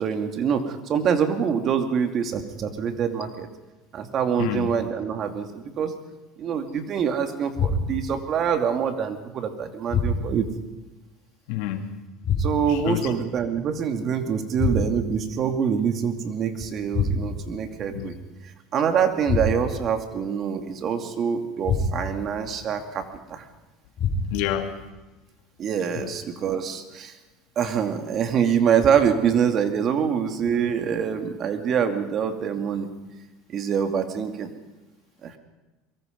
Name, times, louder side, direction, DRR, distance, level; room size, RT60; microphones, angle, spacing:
voice 1, 0.0-3.5 3.9-5.9 6.4-10.5 12.4-18.1 18.7-23.0 23.3-23.4 25.6-27.1 27.6-32.9 33.5-34.5 35.2-35.4, right 7 dB, 45° right, 7 dB, 2.6 m, -25 dB
voice 2, 4.4-4.7 11.5-11.9 12.8-13.1 17.9-18.1 24.3-24.7 26.0-26.1, left 12 dB, 75° left, 6 dB, 2.4 m, -28 dB
sound 1, 7.5-8.2 9.9-10.5 12.2-12.9 14.6-15.2 16.9-17.6 19.3-19.9 21.6-22.3 24.0-24.6, left 3 dB, 45° left, 5.1 m, -26 dB
23.0 x 23.0 x 5.4 m, 1.1 s
supercardioid pair, 105°, 0 cm